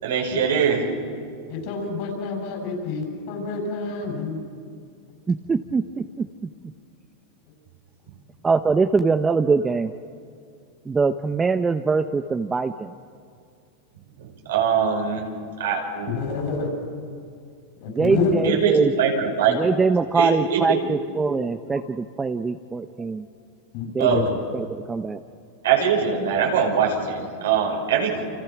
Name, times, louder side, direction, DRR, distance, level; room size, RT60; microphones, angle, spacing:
voice 1, 0.0-0.8 14.2-15.2 15.6-16.2 18.4-19.6 20.2-20.8 24.0-24.3 25.6-28.2, right 7 dB, 85° right, 1 dB, 5.5 m, -22 dB
voice 2, 1.5-4.4 16.1-16.7 17.8-18.3 23.7-24.3, left 4 dB, 60° left, 3 dB, 7.6 m, -28 dB
voice 3, 5.3-6.3 8.4-9.9 10.9-12.9 17.9-18.9 19.5-23.3 23.9-25.2, right 4 dB, 15° right, 8 dB, 0.8 m, -23 dB
29.0 x 26.5 x 6.1 m, 2.4 s
supercardioid pair, 125°, 0 cm